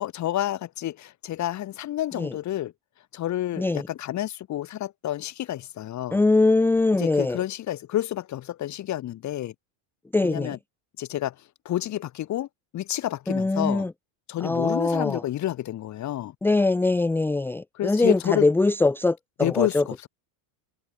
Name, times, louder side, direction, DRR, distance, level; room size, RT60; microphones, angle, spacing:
voice 1, 0.0-2.7 3.1-6.2 7.0-9.5 10.2-10.6 11.0-11.3 11.7-12.5 12.7-13.9 14.3-16.3 17.7-18.5 19.4-20.1, left 13 dB, 35° left, 7.4 m, -29 dB
voice 2, 6.1-7.4 10.1-10.6 13.3-13.9 14.4-15.2 16.4-20.1, left 2 dB, 5° left, 0.8 m, -22 dB
cardioid pair, 180°, 50 cm